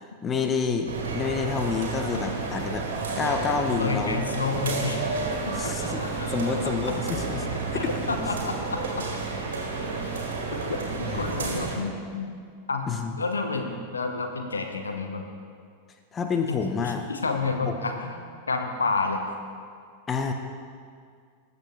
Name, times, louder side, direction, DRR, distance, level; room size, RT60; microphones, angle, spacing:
voice 1, 0.2-2.9 3.2-4.2 5.6-7.5 7.7-7.9 11.0-11.3 12.9-13.2 16.1-17.0 17.7-17.8 20.1-20.3, left 5 dB, 20° left, 5 dB, 0.9 m, -28 dB
sound 1, 0.9-11.8, right 3 dB, 65° right, 2.1 m, -31 dB
voice 2, 3.8-5.1 5.5-5.7 6.2-6.3 7.7-9.1 10.5-12.3 12.7-15.2 16.5-18.2 18.5-19.2, left 3 dB, 75° left, 4 dB, 1.0 m, -30 dB
19.5 x 8.0 x 3.3 m, 2.1 s
figure-of-eight pair, 90°, 0 cm